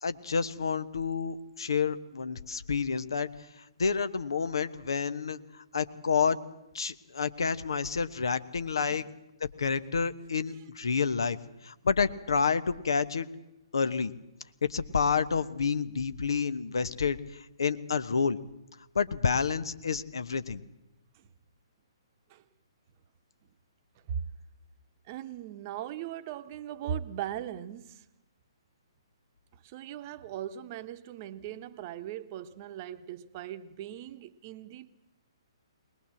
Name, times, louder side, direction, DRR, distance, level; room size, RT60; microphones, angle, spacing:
voice 1, 0.0-3.3 3.8-5.4 5.7-6.4 6.7-9.0 9.6-11.4 11.6-13.3 13.7-14.1 14.6-18.4 18.9-20.6, left 5 dB, 65° left, 1.2 m, -29 dB
voice 2, 25.1-28.0 29.6-34.9, right 10 dB, 35° right, 1.0 m, -39 dB
22.0 x 20.0 x 7.7 m
figure-of-eight pair, 125°, 3 cm